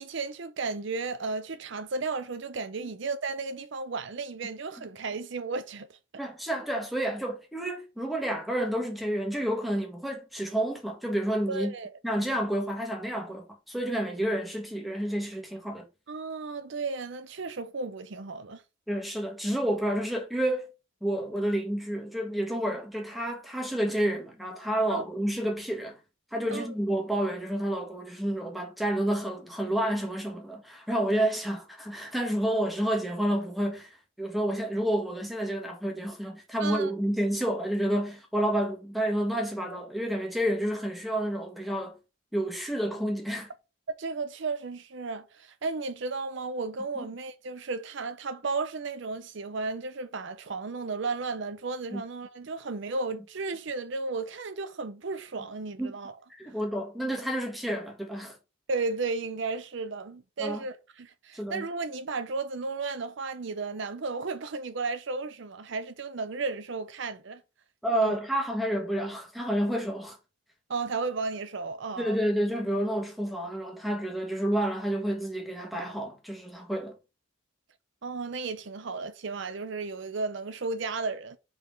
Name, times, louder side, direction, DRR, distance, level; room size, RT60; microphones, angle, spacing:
voice 1, 0.0-6.0 11.5-11.9 16.1-18.6 24.9-25.0 26.5-26.7 36.6-36.9 44.0-56.2 58.7-67.4 67.9-68.2 70.7-72.2 78.0-81.4, right 4 dB, 60° right, 0.6 m, -34 dB
voice 2, 6.2-11.7 12.0-15.9 18.9-20.7 21.0-26.0 26.3-42.0 42.3-43.5 47.0-47.1 51.9-52.0 55.8-55.9 56.4-58.4 60.4-60.6 61.3-61.7 67.8-70.2 72.0-77.0, right 1 dB, ahead, 1.4 m, -30 dB
5.2 x 4.0 x 5.1 m
head